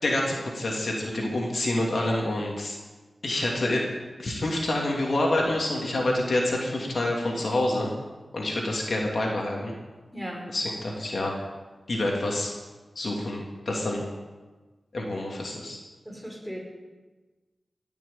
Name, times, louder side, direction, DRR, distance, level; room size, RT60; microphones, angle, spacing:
voice 1, 0.0-2.8 3.2-3.8 4.2-7.9 8.3-9.7 10.5-11.3 11.9-12.5 12.9-14.0 14.9-15.8, left 1 dB, 65° left, -1 dB, 2.9 m, -27 dB
voice 2, 10.1-10.5 16.1-16.6, equal, ahead, -2 dB, 5.3 m, -36 dB
18.0 x 7.1 x 8.7 m, 1.3 s
wide cardioid pair, 70°, 0 cm